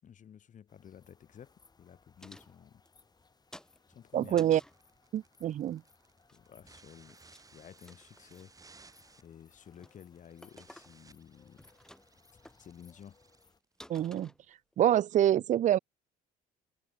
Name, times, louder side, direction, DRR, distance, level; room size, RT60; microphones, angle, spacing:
voice 1, 0.0-2.8 3.9-4.6 6.3-7.2 7.5-8.9 9.2-11.7 12.6-13.2, left 8 dB, 50° left, 5.7 m, -53 dB
sound 1, 0.7-13.6, left 4 dB, 25° left, 4.5 m, -66 dB
sound 2, 2.2-3.3 3.5-4.8 6.1-6.8 7.1-7.5 7.7-8.4 8.9-9.3 9.7-10.0 10.4-11.2 11.5-12.2 12.5-12.6 13.1-13.2 13.4-13.5 13.8-14.8, left 1 dB, 5° left, 6.2 m, -54 dB
voice 2, 4.1-4.6 5.1-5.8 13.9-14.3 14.8-15.8, right 11 dB, 45° right, 0.5 m, -26 dB
sound 3, 4.7-14.2, right 3 dB, 20° right, 3.5 m, -61 dB
cardioid pair, 110°, 17 cm